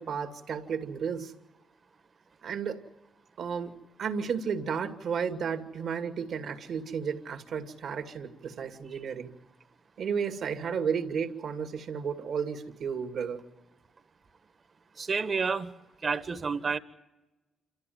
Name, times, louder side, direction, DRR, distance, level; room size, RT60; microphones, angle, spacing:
voice 1, 0.0-1.3 2.4-2.8 3.4-9.3 10.0-13.4, right 6 dB, 65° right, 7 dB, 2.3 m, -33 dB
voice 2, 15.0-15.7 16.0-16.8, right 5 dB, 45° right, 11 dB, 1.6 m, -29 dB
27.5 x 14.0 x 9.5 m, 1.0 s
supercardioid pair, 60°, 0 cm